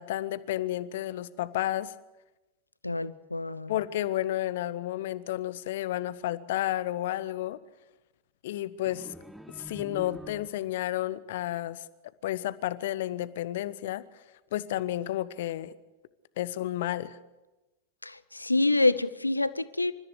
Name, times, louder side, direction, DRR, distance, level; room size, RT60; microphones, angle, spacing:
voice 1, 0.0-1.9 3.7-7.6 8.4-9.1 9.6-11.8 12.2-14.0 14.5-15.7 16.4-17.2, left 14 dB, 55° left, 16 dB, 1.0 m, -31 dB
voice 2, 2.8-3.7 18.0-19.9, left 2 dB, 85° left, 16 dB, 0.8 m, -27 dB
sound 1, 8.9-10.9, equal, ahead, 0.7 m, -45 dB
27.5 x 14.0 x 8.4 m, 1.1 s
figure-of-eight pair, 90°, 0 cm